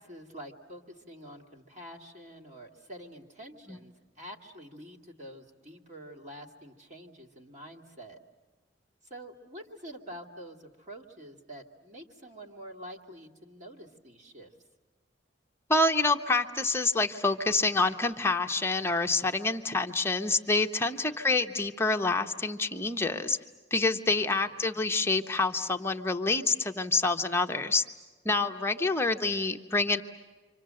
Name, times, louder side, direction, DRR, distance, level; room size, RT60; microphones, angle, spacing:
voice 1, 0.0-8.2 9.1-14.5 21.1-21.2, equal, 40° right, 2 dB, 2.5 m, -47 dB
voice 2, 15.7-23.4 23.7-27.8 28.2-30.0, left 3 dB, 15° left, 5 dB, 0.9 m, -27 dB
29.0 x 25.5 x 7.7 m, 1.3 s
head